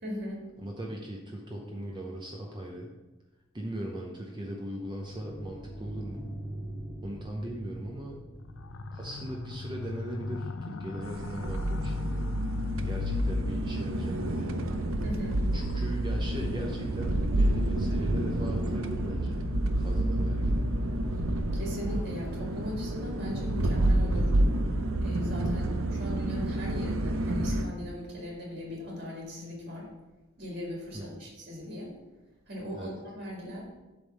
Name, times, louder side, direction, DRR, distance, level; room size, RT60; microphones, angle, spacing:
voice 1, 0.0-0.4 15.0-15.4 21.5-24.3 25.0-29.9 30.4-31.9 32.5-33.7, equal, 50° right, -2 dB, 1.9 m, -38 dB
voice 2, 0.6-2.9 3.5-6.4 7.0-8.3 8.9-12.3 12.8-14.7 15.5-19.4 19.8-20.6 30.9-31.2 32.7-33.0, right 1 dB, 20° right, 0 dB, 0.7 m, -39 dB
sound 1, 4.9-12.1, right 1 dB, ahead, 2.5 m, -44 dB
sound 2, 8.4-18.9, left 3 dB, 70° left, 0.4 m, -42 dB
sound 3, 11.0-27.6, right 1 dB, 90° right, 0.6 m, -29 dB
8.1 x 3.5 x 5.4 m, 1.1 s
head